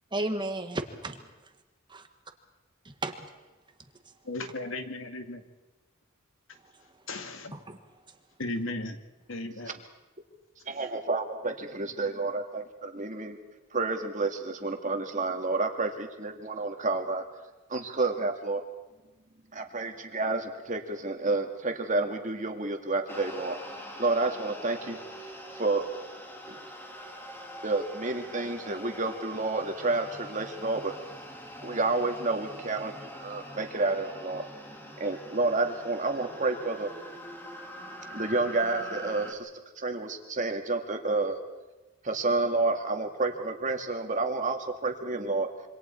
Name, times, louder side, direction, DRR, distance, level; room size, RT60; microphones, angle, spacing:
voice 1, 0.1-1.3 1.9-2.0 3.0-3.3 4.0-4.1 6.6-7.1 7.5-8.1, right 2 dB, 20° right, 1.7 m, -35 dB
voice 2, 4.3-5.4 7.1-7.5 8.4-9.0 9.3-9.8, left 2 dB, 70° left, 2.1 m, -35 dB
voice 3, 10.7-13.4 13.7-17.2 17.7-18.6 19.5-23.6 24.0-25.0 25.5-25.9 26.5-26.6 27.6-30.9 31.6-34.4 35.0-36.9 38.1-39.5 39.8-41.3 42.0-45.5, right 3 dB, 35° right, 2.2 m, -30 dB
sound 1, 23.1-39.3, equal, 10° left, 2.4 m, -44 dB
27.0 x 25.5 x 4.6 m
head